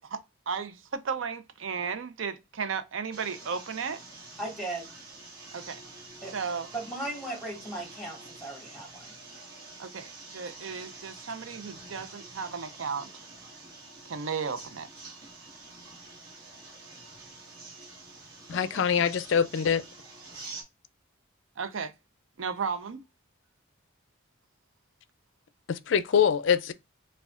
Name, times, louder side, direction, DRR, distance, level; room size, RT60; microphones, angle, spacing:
voice 1, 0.5-4.0 5.5-5.8 6.3-6.7 9.8-13.1 14.1-14.9 21.6-21.9 22.4-23.0, right 5 dB, 75° right, 0.5 m, -34 dB
sound 1, 3.1-20.6, right 3 dB, 45° right, 1.3 m, -47 dB
voice 2, 4.4-4.9 6.2-6.3 6.7-9.1, right 2 dB, ahead, 1.5 m, -37 dB
voice 3, 18.5-19.8 25.7-26.7, left 7 dB, 65° left, 0.4 m, -24 dB
4.8 x 2.3 x 2.4 m
head